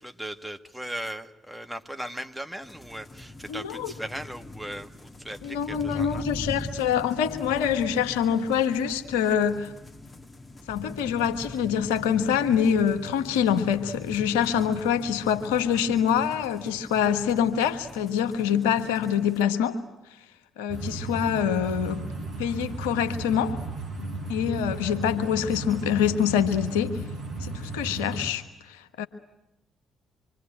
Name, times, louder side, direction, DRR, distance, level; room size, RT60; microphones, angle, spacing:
voice 1, 0.0-6.2, right 1 dB, 5° right, 2.0 m, -38 dB
sound 1, 2.6-19.4, left 2 dB, 25° left, 2.2 m, -42 dB
voice 2, 3.5-3.9 5.4-9.7 10.7-19.8 20.6-22.1 22.4-23.6 24.3-27.0 27.4-29.1, left 8 dB, 75° left, 1.4 m, -25 dB
sound 2, 20.7-28.3, right 2 dB, 65° right, 6.6 m, -35 dB
25.5 x 25.0 x 9.1 m
figure-of-eight pair, 45°, 0 cm